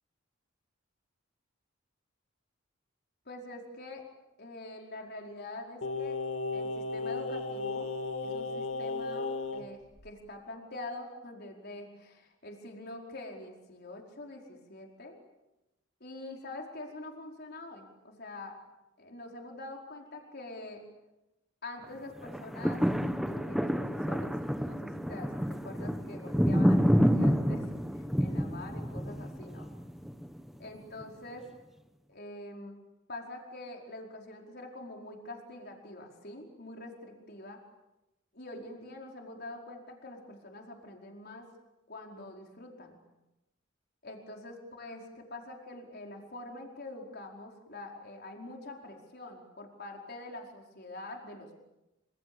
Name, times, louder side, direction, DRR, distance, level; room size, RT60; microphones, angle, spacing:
voice 1, 3.3-4.0 4.4-6.2 6.5-7.9 8.2-15.2 16.0-18.6 19.0-20.8 21.6-22.8 23.2-24.3 24.6-25.3 25.6-29.7 30.6-31.4 32.1-32.8 33.1-37.6 38.3-41.5 41.9-43.0 44.0-51.6, left 2 dB, 50° left, 1 dB, 4.8 m, -45 dB
Singing, 5.8-9.7 10.0-10.1, left 3 dB, 90° left, 2.5 m, -35 dB
sound 1, 22.2-30.5 31.0-31.1, equal, ahead, 1.3 m, -29 dB
28.0 x 26.5 x 7.0 m, 0.95 s
head